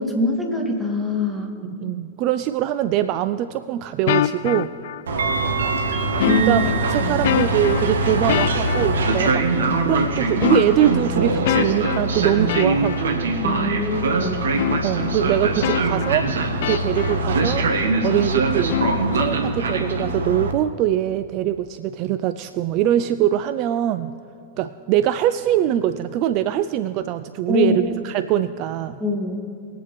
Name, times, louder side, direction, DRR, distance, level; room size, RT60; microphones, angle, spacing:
voice 1, 0.0-1.5 6.2-6.6 7.0-7.2 13.4-14.4 27.5-27.9 29.0-29.4, left 1 dB, 10° right, -1 dB, 2.5 m, -23 dB
voice 2, 1.6-4.7 6.5-13.3 14.8-16.3 16.6-17.6 18.0-18.8 19.1-24.1 24.6-29.0, right 12 dB, 45° right, 11 dB, 0.4 m, -22 dB
sound 1, 4.1-5.4 6.2-9.2 10.4-13.0 14.6-15.2 15.6-17.2 18.7-19.3, left 12 dB, 55° left, 0.4 m, -25 dB
Train, 5.1-20.5, right 2 dB, 65° right, 1.1 m, -23 dB
22.0 x 8.0 x 3.3 m, 2.5 s
figure-of-eight pair, 90°, 0 cm